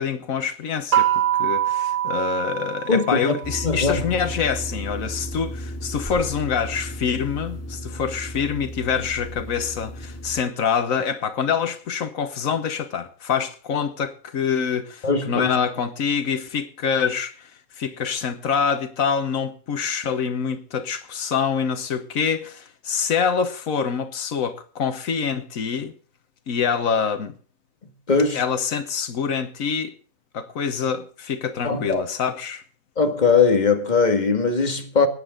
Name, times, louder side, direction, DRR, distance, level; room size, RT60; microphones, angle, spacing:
voice 1, 0.0-17.5 17.8-25.9 26.5-27.3 28.3-29.9 30.3-32.6, left 6 dB, 85° left, 1.5 m, -25 dB
sound 1, 0.9-3.6, right 11 dB, 75° right, 1.4 m, -23 dB
voice 2, 2.9-3.3 3.6-4.1 15.0-15.5 28.1-28.4 31.6-32.0 33.0-35.1, left 4 dB, 35° left, 2.0 m, -20 dB
sound 2, 3.4-10.4, equal, 10° left, 3.2 m, -34 dB
21.0 x 9.7 x 3.8 m
omnidirectional pair, 1.4 m